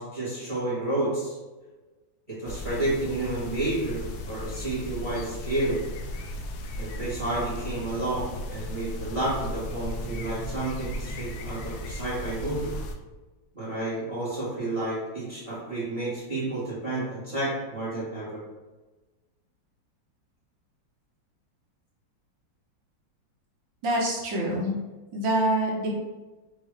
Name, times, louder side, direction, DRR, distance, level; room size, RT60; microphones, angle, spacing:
voice 1, 0.0-1.4 2.3-5.8 6.8-12.7 13.5-18.4, right 2 dB, 20° right, -8 dB, 1.4 m, -30 dB
sound 1, 2.5-12.9, left 1 dB, 85° left, 1.3 m, -36 dB
voice 2, 23.8-24.7 25.1-26.0, right 1 dB, 75° right, -3 dB, 1.7 m, -25 dB
5.1 x 2.9 x 3.2 m, 1.2 s
omnidirectional pair, 2.0 m